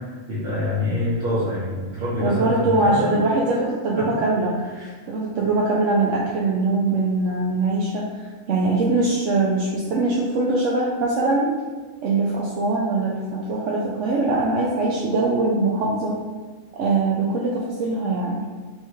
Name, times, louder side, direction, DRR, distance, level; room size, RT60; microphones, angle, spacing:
voice 1, 0.0-3.1 4.0-4.2 4.7-4.9, left 1 dB, 55° right, -10 dB, 1.1 m, -26 dB
voice 2, 2.2-4.6 5.1-11.5 12.0-16.2 16.7-18.4, right 2 dB, 75° right, -3 dB, 0.9 m, -22 dB
3.4 x 2.9 x 4.5 m, 1.4 s
omnidirectional pair, 1.3 m